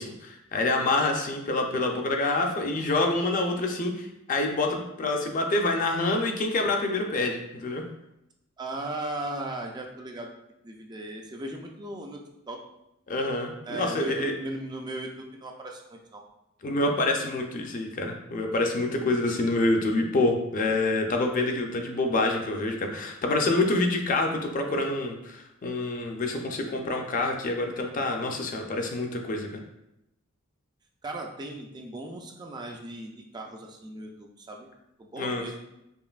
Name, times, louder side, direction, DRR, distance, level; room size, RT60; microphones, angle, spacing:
voice 1, 0.0-7.8 13.1-14.3 16.6-29.5 35.2-35.4, left 2 dB, 40° left, 3 dB, 0.5 m, -27 dB
voice 2, 8.6-10.3 10.6-12.6 13.7-16.2 31.0-34.7 35.0-35.6, right 1 dB, 20° right, 1 dB, 0.3 m, -37 dB
5.3 x 2.5 x 2.4 m, 0.85 s
head